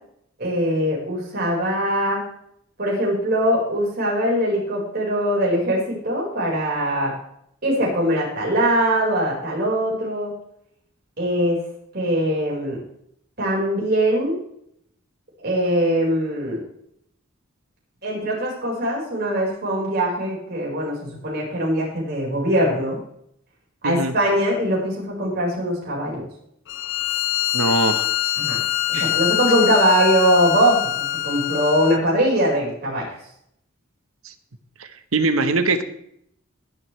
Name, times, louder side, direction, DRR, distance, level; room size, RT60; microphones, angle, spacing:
voice 1, 0.4-2.2 2.8-7.1 7.6-10.3 11.2-11.6 11.9-12.8 13.4-14.3 15.4-16.6 18.0-23.0 23.8-26.2 28.4-28.6 28.9-33.1, equal, 50° right, -3 dB, 5.0 m, -21 dB
Bowed string instrument, 26.7-32.1, left 14 dB, 60° left, 0.6 m, -24 dB
voice 2, 27.5-28.1 28.9-29.1 34.2-34.3 35.1-35.8, right 2 dB, 80° right, 9 dB, 1.2 m, -21 dB
21.0 x 7.9 x 3.3 m, 0.71 s
head